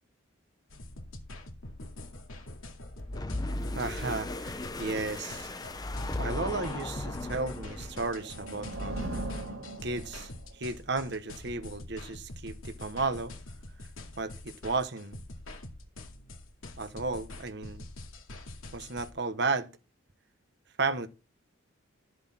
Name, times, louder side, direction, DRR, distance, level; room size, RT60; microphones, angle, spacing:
sound 1, 0.7-19.1, left 2 dB, 80° left, 2.4 m, -45 dB
sound 2, 2.9-8.1, left 2 dB, 20° left, 0.6 m, -36 dB
voice 1, 3.7-5.5 6.2-9.0 9.8-13.3 14.2-15.2 16.8-17.9 18.7-19.7 20.8-21.1, right 3 dB, 55° right, 1.1 m, -33 dB
sound 3, 7.7-10.5, right 1 dB, 70° right, 3.7 m, -38 dB
13.0 x 7.9 x 4.3 m
head